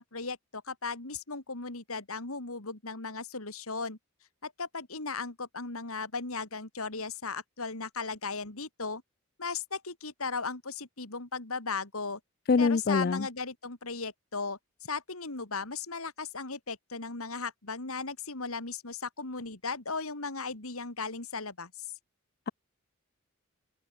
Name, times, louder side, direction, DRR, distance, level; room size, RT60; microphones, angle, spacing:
voice 1, 0.0-4.0 4.4-9.0 9.4-12.2 12.6-21.9, left 4 dB, 75° left, 3.0 m, -37 dB
voice 2, 12.5-13.2, left 4 dB, 45° left, 0.4 m, -24 dB
open air
head